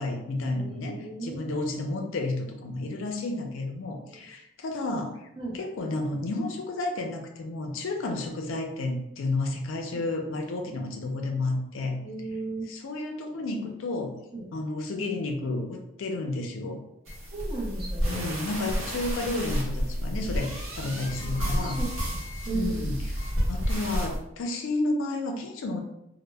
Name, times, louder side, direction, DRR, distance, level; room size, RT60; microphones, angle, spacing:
voice 1, 0.0-5.3 5.5-12.0 12.6-14.1 14.5-16.8 18.1-21.8 22.5-23.2 23.5-25.8, left 2 dB, 65° left, 3 dB, 0.4 m, -31 dB
voice 2, 0.5-1.5 5.4-5.6 12.0-12.7 14.3-14.4 17.3-18.2 20.8-21.4 21.6-22.2 22.5-22.8, right 3 dB, 20° right, -3 dB, 0.5 m, -35 dB
sound 1, 17.1-24.2, equal, 70° right, 0.9 m, -30 dB
2.1 x 2.0 x 3.2 m, 0.83 s
head